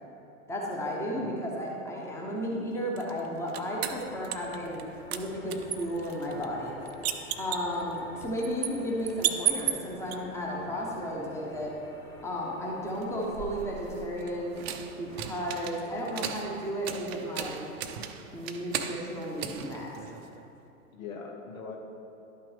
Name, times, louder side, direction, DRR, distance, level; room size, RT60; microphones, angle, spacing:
voice 1, 0.5-6.8 7.4-11.8 12.2-14.6 15.0-17.7 18.3-19.9, equal, 5° left, -3 dB, 1.1 m, -34 dB
voice 2, 1.1-1.5 20.9-21.8, left 4 dB, 70° left, 2 dB, 1.2 m, -40 dB
sound 1, 3.0-4.8 5.1-10.2 12.9-20.4, right 10 dB, 45° right, 0.6 m, -36 dB
sound 2, 3.7-15.9, left 2 dB, 40° left, 1.9 m, -50 dB
11.5 x 5.7 x 3.4 m, 3.0 s
figure-of-eight pair, 105°, 43 cm